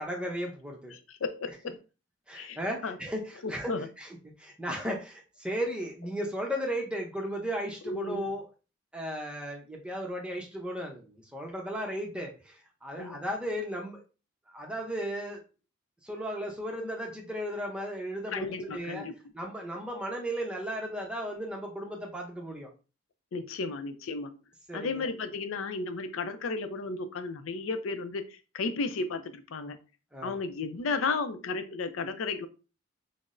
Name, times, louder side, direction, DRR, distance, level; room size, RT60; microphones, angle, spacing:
voice 1, 0.0-0.9 2.3-4.1 4.4-8.5 8.9-14.0 14.5-15.4 16.0-19.0 19.3-22.7 24.7-25.1 30.1-30.4, equal, 5° right, 0 dB, 0.6 m, -35 dB
voice 2, 0.9-1.8 2.3-3.0 3.4-3.9 7.8-8.3 13.0-13.2 18.3-19.1 23.3-24.4 24.7-29.8 30.2-32.5, left 4 dB, 90° left, 9 dB, 0.5 m, -34 dB
5.8 x 2.0 x 2.5 m, 0.33 s
head